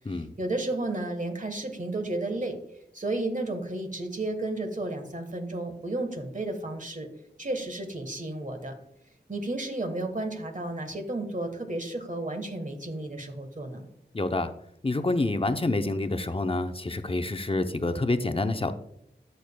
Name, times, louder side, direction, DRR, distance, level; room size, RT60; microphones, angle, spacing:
voice 1, 0.1-2.6 2.9-7.1 7.4-8.7 9.3-13.9, right 2 dB, 45° right, 5 dB, 1.3 m, -32 dB
voice 2, 14.1-14.5 14.8-18.7, left 2 dB, 30° left, 8 dB, 0.6 m, -27 dB
12.0 x 6.9 x 2.2 m, 0.74 s
wide cardioid pair, 50°, 18 cm